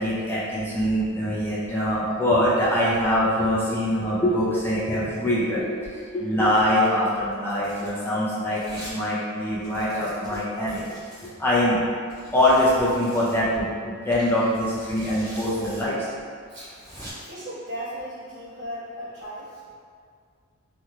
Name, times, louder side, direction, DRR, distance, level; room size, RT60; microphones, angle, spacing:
voice 1, 0.0-5.8 6.1-10.9 11.4-11.8 12.3-16.0, left 1 dB, 10° left, -9 dB, 0.6 m, -23 dB
Domestic sounds home sounds, 6.5-6.8 7.3-8.0 8.6-9.0 9.3-9.4 9.6-11.3 12.1-13.4 14.3-15.8 16.1-16.2 16.6-17.1, equal, 20° right, 1.2 m, -44 dB
voice 2, 16.5-19.7, equal, 50° right, -11 dB, 1.1 m, -37 dB
3.1 x 2.9 x 2.4 m, 2.1 s
head